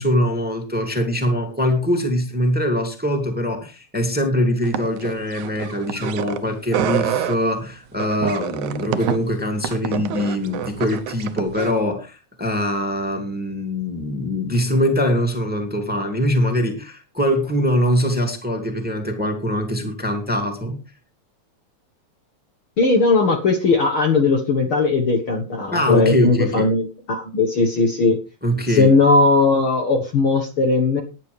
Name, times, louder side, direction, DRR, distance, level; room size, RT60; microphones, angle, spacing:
voice 1, 0.0-20.8 25.7-26.7 28.4-28.9, equal, 5° right, 4 dB, 2.2 m, -22 dB
sound 1, 4.6-6.4 6.7-7.4 8.0-11.8, right 9 dB, 80° right, 2.3 m, -27 dB
voice 2, 22.8-28.2 28.7-31.0, left 3 dB, 50° left, 4 dB, 2.0 m, -18 dB
18.0 x 10.5 x 3.4 m, 0.31 s
omnidirectional pair, 3.4 m